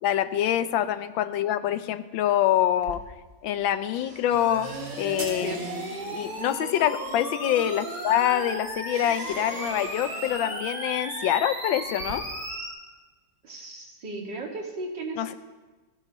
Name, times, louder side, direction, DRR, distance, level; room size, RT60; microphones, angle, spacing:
voice 1, 0.0-3.0 3.4-4.7 5.0-12.2 15.2-15.3, left 11 dB, 85° left, 12 dB, 1.4 m, -25 dB
sound 1, 2.8-3.7 3.9-10.8 11.5-12.1, right 3 dB, 50° right, 1.6 m, -45 dB
sound 2, 4.3-12.7, right 1 dB, 25° right, 2.9 m, -35 dB
sound 3, 5.2-6.2, right 2 dB, 90° right, 3.7 m, -40 dB
voice 2, 13.4-15.3, right 2 dB, 65° right, 0 dB, 2.7 m, -36 dB
28.5 x 9.7 x 3.0 m, 1.3 s
omnidirectional pair, 2.1 m